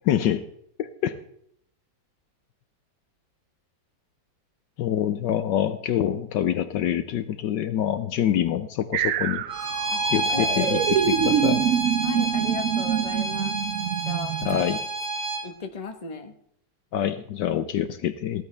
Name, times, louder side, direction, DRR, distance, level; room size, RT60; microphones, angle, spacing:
voice 1, 0.1-0.5 0.8-1.2 4.8-9.4 10.1-11.7 14.4-14.9 16.9-18.4, left 10 dB, 70° left, 11 dB, 1.2 m, -26 dB
sound 1, 8.9-14.6, right 10 dB, 80° right, 0.7 m, -26 dB
Bowed string instrument, 9.5-15.4, right 2 dB, 15° right, 3.0 m, -29 dB
voice 2, 10.3-10.9 12.0-13.6 14.0-14.4 15.4-16.3, left 5 dB, 25° left, 6 dB, 0.9 m, -36 dB
16.0 x 12.5 x 3.4 m, 0.67 s
omnidirectional pair, 2.1 m